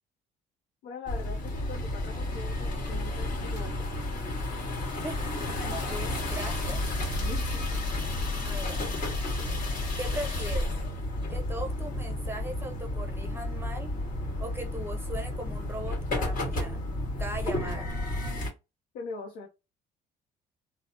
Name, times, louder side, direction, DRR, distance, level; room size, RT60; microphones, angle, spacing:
voice 1, 0.8-4.0 7.2-7.8 18.9-19.5, left 4 dB, 90° left, 0.7 m, -42 dB
sound 1, 1.1-18.5, left 1 dB, 55° left, 1.6 m, -31 dB
voice 2, 5.0-6.8 8.4-8.8 10.0-10.7 11.3-14.0 14.4-16.8 17.2-17.9, right 1 dB, 15° right, 0.6 m, -39 dB
3.1 x 2.0 x 2.7 m
cardioid pair, 110°, 17 cm